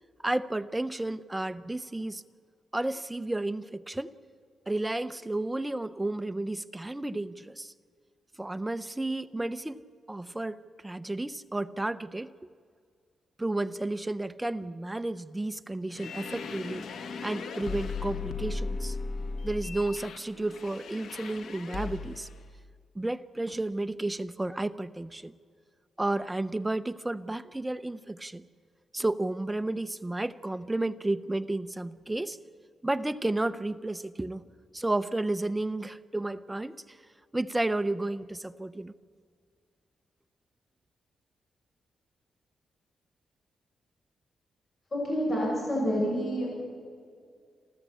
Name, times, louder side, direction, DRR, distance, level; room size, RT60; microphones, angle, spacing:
voice 1, 0.2-2.2 2.7-4.1 4.7-7.7 8.4-9.8 10.1-12.3 13.4-16.9 17.2-19.0 19.4-22.3 22.9-25.3 26.0-28.5 28.9-32.4 32.8-34.4 34.7-37.0 37.3-38.9, right 2 dB, 10° right, 12 dB, 0.6 m, -32 dB
sound 1, 15.9-22.3, left 4 dB, 75° left, 1.5 m, -37 dB
voice 2, 44.9-46.5, equal, 30° left, -3 dB, 7.1 m, -28 dB
29.0 x 13.5 x 8.4 m, 2.1 s
wide cardioid pair, 155°, 0 cm